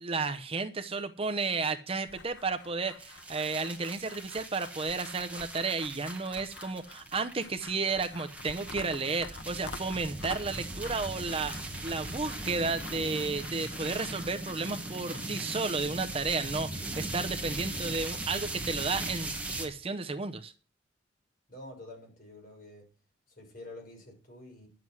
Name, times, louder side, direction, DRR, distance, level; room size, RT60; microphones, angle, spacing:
voice 1, 0.0-19.3 19.6-20.5, right 4 dB, 30° right, 0.7 m, -33 dB
sound 1, 2.1-15.3, left 4 dB, 75° left, 1.2 m, -49 dB
sound 2, 3.0-19.7, right 2 dB, 10° right, 1.7 m, -39 dB
voice 2, 21.5-22.9 23.3-24.7, left 2 dB, 45° left, 5.9 m, -48 dB
11.0 x 7.7 x 6.1 m
head